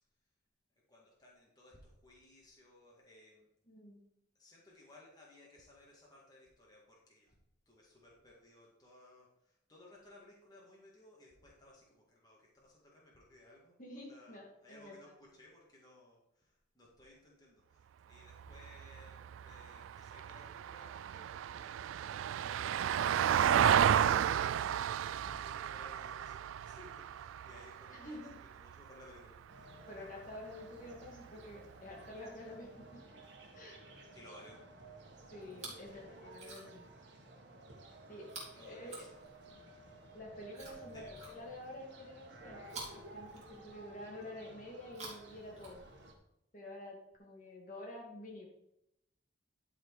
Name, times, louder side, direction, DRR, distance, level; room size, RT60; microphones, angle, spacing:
voice 1, 0.9-3.5 4.4-7.4 7.7-29.8 34.1-34.6 38.5-39.1 40.9-41.1, left 1 dB, 20° left, -4 dB, 2.0 m, -59 dB
voice 2, 3.7-4.0 13.8-15.1 23.8-24.2 27.9-28.4 29.9-33.2 33.5-33.8 35.3-36.9 38.1-38.3 38.6-39.1 40.1-41.0 41.3-42.6 43.1-45.8 46.5-48.5, left 1 dB, 40° left, -1 dB, 2.1 m, -49 dB
Vehicle, 18.3-28.8 31.1-31.2, right 9 dB, 90° right, 0.3 m, -33 dB
sound 1, 29.5-46.1, right 2 dB, 60° right, 1.7 m, -55 dB
Chewing mastication, 35.4-35.9 36.3-36.9 38.2-39.6 40.5-41.8 42.6-43.9 44.8-46.2 47.1-47.2, right 3 dB, 35° right, 3.0 m, -51 dB
11.5 x 4.8 x 4.8 m, 0.82 s
head